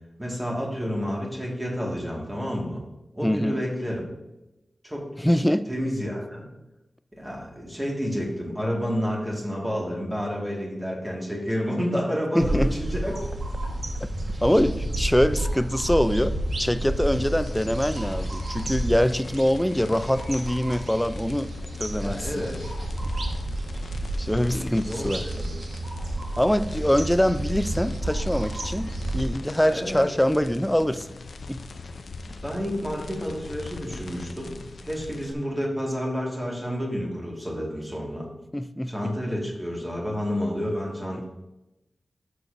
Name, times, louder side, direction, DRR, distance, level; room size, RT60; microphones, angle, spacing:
voice 1, 0.2-2.8 3.1-4.0 4.8-5.1 5.7-6.5 7.1-13.2 22.0-22.7 24.9-25.5 29.6-30.1 32.2-34.6 34.8-38.3 38.9-41.2, equal, 10° right, -3 dB, 2.0 m, -30 dB
voice 2, 3.2-3.6 5.2-5.7 12.3-12.7 14.4-21.5 21.8-22.5 24.2-25.3 26.4-28.9 29.1-31.2 31.5-31.6 38.5-39.1, equal, 5° left, 12 dB, 0.4 m, -24 dB
sound 1, 12.4-29.3, right 1 dB, 70° right, 1.4 m, -31 dB
sound 2, 17.0-35.3, left 3 dB, 80° left, 0.6 m, -41 dB
12.5 x 6.6 x 2.7 m, 0.96 s
wide cardioid pair, 110°, 0 cm